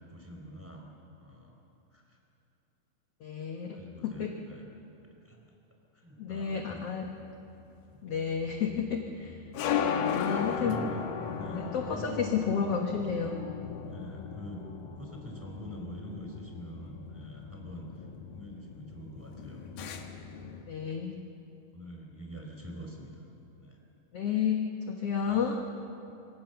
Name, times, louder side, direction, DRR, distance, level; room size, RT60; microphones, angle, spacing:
voice 1, 0.1-0.9 1.2-1.5 1.9-2.2 3.7-4.7 5.2-5.4 5.9-6.8 7.9-8.0 10.4-11.0 11.3-12.3 13.8-14.6 15.0-19.7 20.1-20.2 21.7-23.3 23.6-23.8 25.1-25.4, equal, 5° right, 0 dB, 3.9 m, -44 dB
voice 2, 3.2-3.8 4.2-4.3 6.2-7.1 8.0-9.4 10.1-10.8 11.5-13.8 20.7-21.2 24.1-25.6, left 7 dB, 55° left, 2 dB, 1.8 m, -31 dB
sound 1, 6.6-20.6, left 7 dB, 80° left, 3.2 m, -37 dB
27.0 x 24.0 x 7.0 m, 2.9 s
omnidirectional pair, 4.2 m